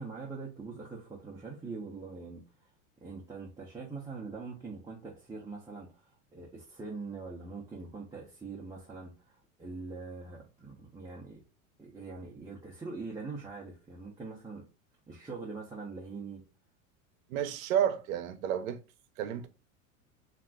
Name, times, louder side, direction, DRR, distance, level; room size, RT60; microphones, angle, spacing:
voice 1, 0.0-2.7 3.0-11.4 11.8-14.6 15.1-16.4, right 4 dB, 10° right, 0.5 m, -43 dB
voice 2, 17.3-18.8 19.2-19.5, right 9 dB, 80° right, 0.6 m, -31 dB
2.5 x 2.1 x 3.5 m
hypercardioid pair, 110°, 41 cm